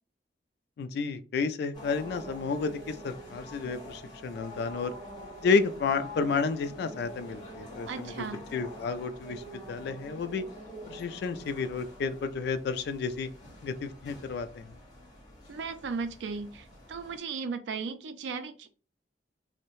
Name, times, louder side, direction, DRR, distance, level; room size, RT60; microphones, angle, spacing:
voice 1, 0.8-4.9 5.4-8.2 8.5-10.4 10.9-13.3 13.6-14.7, left 4 dB, 65° left, 11 dB, 0.3 m, -31 dB
sound 1, 1.7-17.2, equal, 25° left, 1.1 m, -46 dB
voice 2, 7.8-8.4 15.5-18.7, right 5 dB, 80° right, 10 dB, 0.4 m, -36 dB
2.7 x 2.1 x 2.9 m, 0.37 s
head